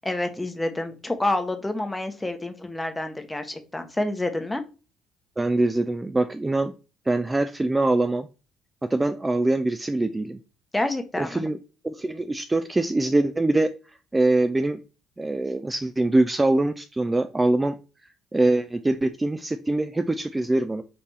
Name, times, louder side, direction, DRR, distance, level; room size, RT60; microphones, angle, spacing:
voice 1, 0.0-4.6 10.7-11.4, left 2 dB, 10° left, 6 dB, 0.9 m, -28 dB
voice 2, 5.4-6.7 7.1-8.3 8.9-10.4 11.2-11.6 11.8-13.7 14.1-14.8 15.2-17.7 18.3-20.8, right 2 dB, 15° right, 9 dB, 0.4 m, -23 dB
5.3 x 2.7 x 3.3 m, 0.32 s
supercardioid pair, 80°, 0 cm